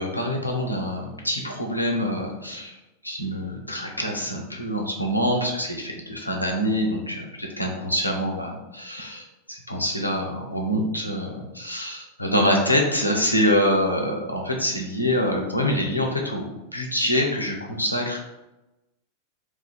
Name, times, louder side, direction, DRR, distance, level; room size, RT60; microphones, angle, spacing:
voice 1, 0.0-2.7 3.0-18.3, equal, 85° left, 1 dB, 0.6 m, -25 dB
2.6 x 2.5 x 3.9 m, 0.98 s
figure-of-eight pair, 90°, 0 cm